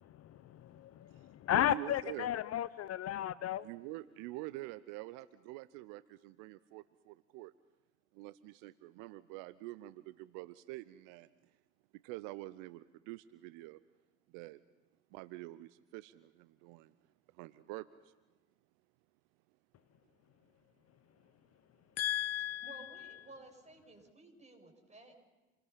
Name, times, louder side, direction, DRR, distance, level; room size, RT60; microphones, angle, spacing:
voice 1, 0.1-3.7 22.0-23.2, left 12 dB, 45° left, 0.7 m, -35 dB
voice 2, 1.1-2.3 3.6-7.5 8.1-11.6 11.9-13.8 14.3-14.6 15.1-17.0 17.3-18.1, right 18 dB, 70° right, 0.7 m, -47 dB
voice 3, 22.6-25.3, right 2 dB, 20° right, 7.4 m, -55 dB
28.5 x 21.0 x 5.8 m
hypercardioid pair, 60°, 34 cm